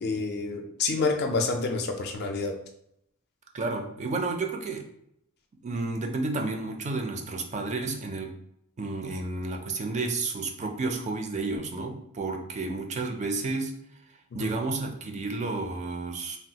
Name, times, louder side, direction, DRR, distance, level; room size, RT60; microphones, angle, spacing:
voice 1, 0.0-2.6 14.4-14.5, left 3 dB, 45° left, 4 dB, 0.4 m, -28 dB
voice 2, 3.5-4.9 5.6-8.3 8.8-13.7 14.3-16.4, right 3 dB, 30° right, 3 dB, 0.4 m, -31 dB
3.2 x 2.3 x 2.8 m, 0.76 s
head